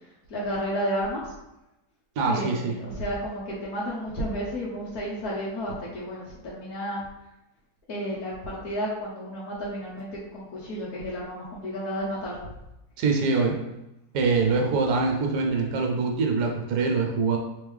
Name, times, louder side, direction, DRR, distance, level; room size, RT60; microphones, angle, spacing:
voice 1, 0.3-1.3 2.3-7.0 7.9-12.4, equal, 70° left, -6 dB, 1.3 m, -32 dB
voice 2, 2.2-2.7 13.0-13.5 14.1-17.4, right 4 dB, 85° right, 2 dB, 1.3 m, -24 dB
3.5 x 3.1 x 3.5 m, 0.91 s
omnidirectional pair, 1.7 m